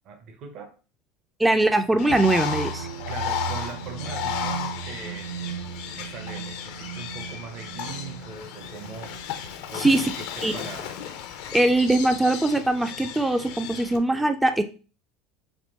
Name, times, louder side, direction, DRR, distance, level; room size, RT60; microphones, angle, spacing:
voice 1, 0.0-0.7 3.1-9.1 9.7-10.9, right 5 dB, 55° right, 0.8 m, -41 dB
voice 2, 1.4-2.9 9.8-10.0 10.4-10.5 11.5-14.6, right 2 dB, 10° right, 0.4 m, -21 dB
Bird, 2.0-14.0, left 9 dB, 70° left, 0.6 m, -34 dB
sound 1, 2.1-9.8, right 8 dB, 80° right, 0.4 m, -37 dB
3.6 x 2.8 x 3.8 m
supercardioid pair, 105°, 0 cm